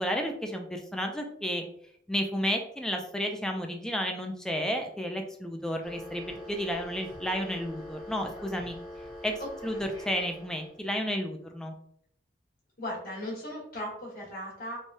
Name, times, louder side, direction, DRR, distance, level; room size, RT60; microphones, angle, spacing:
voice 1, 0.0-1.7 2.1-8.8 9.2-11.7, equal, 5° left, 3 dB, 0.3 m, -32 dB
sound 1, 5.8-10.8, left 1 dB, 20° left, 0.8 m, -44 dB
voice 2, 12.8-14.8, left 1 dB, 50° left, -4 dB, 1.3 m, -37 dB
3.3 x 2.2 x 2.6 m, 0.67 s
head